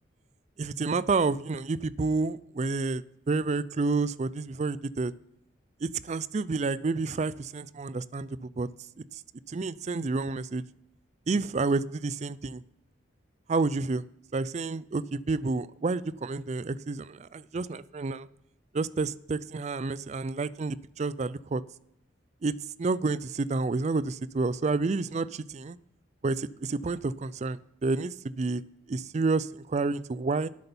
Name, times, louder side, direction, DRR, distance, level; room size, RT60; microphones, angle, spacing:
voice 1, 0.6-5.1 5.8-8.7 9.1-9.2 9.5-10.6 11.3-12.6 13.5-14.0 14.3-18.3 18.7-21.6 22.4-25.8 26.2-28.6 28.9-30.5, right 3 dB, 35° right, 18 dB, 0.4 m, -29 dB
11.0 x 8.1 x 5.4 m, 0.81 s
head